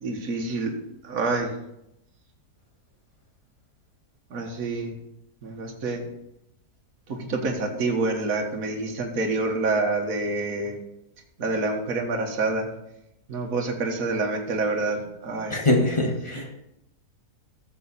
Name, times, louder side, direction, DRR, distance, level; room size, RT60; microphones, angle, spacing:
voice 1, 0.0-0.7 1.0-1.5 4.3-4.9 5.4-6.0 7.1-10.8 11.4-12.7 13.3-15.6, right 3 dB, 60° right, 2 dB, 1.9 m, -27 dB
voice 2, 15.5-16.5, left 1 dB, 20° left, 1 dB, 1.5 m, -23 dB
14.0 x 7.3 x 4.1 m, 0.84 s
omnidirectional pair, 1.7 m